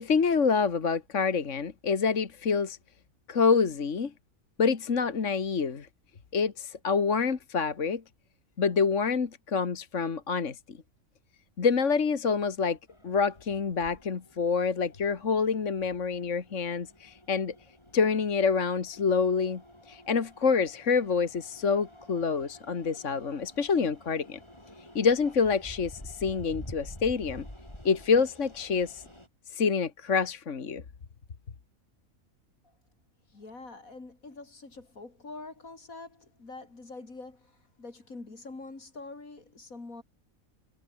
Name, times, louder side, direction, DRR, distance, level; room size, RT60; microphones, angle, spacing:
voice 1, 0.0-2.8 3.3-4.1 4.6-5.9 6.3-8.0 8.6-10.8 11.6-12.8 13.0-17.5 17.9-19.6 19.9-24.4 25.0-27.5 27.8-29.0 29.5-30.8, left 5 dB, 60° left, 2.0 m, -27 dB
sound 1, 12.9-29.3, left 1 dB, 20° left, 5.9 m, -50 dB
voice 2, 33.3-40.0, left 3 dB, 80° left, 4.5 m, -45 dB
omnidirectional pair, 1.4 m